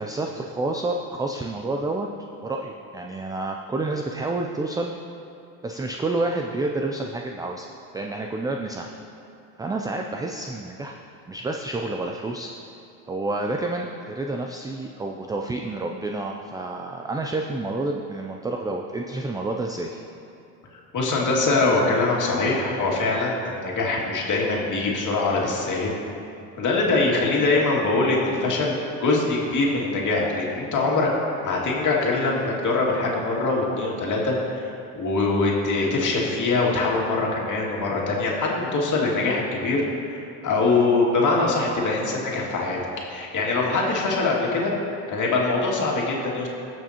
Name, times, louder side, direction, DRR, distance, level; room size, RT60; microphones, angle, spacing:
voice 1, 0.0-2.1 2.4-4.9 5.6-7.7 7.9-8.9 9.6-11.0 11.3-12.5 13.1-20.0, right 2 dB, 10° right, 2 dB, 0.3 m, -29 dB
voice 2, 20.9-25.9 26.6-28.8 29.0-31.1 31.4-39.8 40.4-44.7 45.1-46.5, left 3 dB, 40° left, -3 dB, 2.3 m, -23 dB
18.5 x 6.2 x 2.9 m, 2.7 s
supercardioid pair, 85°, 45 cm